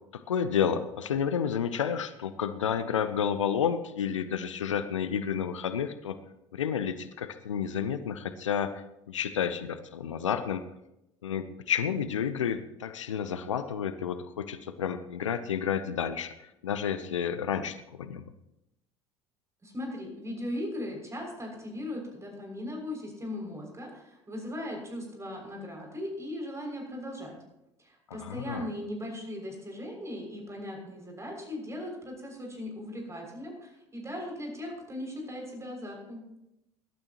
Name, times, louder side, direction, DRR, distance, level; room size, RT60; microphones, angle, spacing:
voice 1, 0.1-6.2 6.5-10.6 11.2-18.3 28.1-28.7, left 8 dB, 80° left, 12 dB, 0.7 m, -31 dB
voice 2, 19.6-27.4 27.8-36.2, left 1 dB, 20° right, 0 dB, 6.4 m, -38 dB
22.5 x 12.5 x 3.0 m, 0.87 s
figure-of-eight pair, 65°, 16 cm